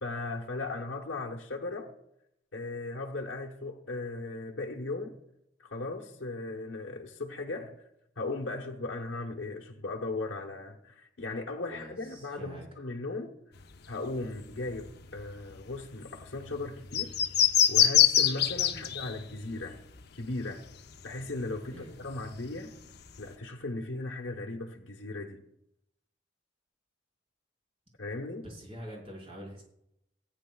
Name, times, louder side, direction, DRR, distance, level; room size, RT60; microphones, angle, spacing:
voice 1, 0.0-1.9 2.5-5.2 5.6-7.8 8.2-13.3 13.9-17.2 17.7-19.8 20.1-20.7 21.0-22.7 23.2-25.4 28.0-28.5, left 2 dB, 80° left, 1.2 m, -37 dB
voice 2, 11.7-12.7 18.7-18.9 21.7-22.0 28.4-29.6, equal, 30° right, 4.9 m, -45 dB
sound 1, 13.6-21.3 21.6-23.2, left 10 dB, 60° left, 0.7 m, -27 dB
18.5 x 9.4 x 2.4 m
head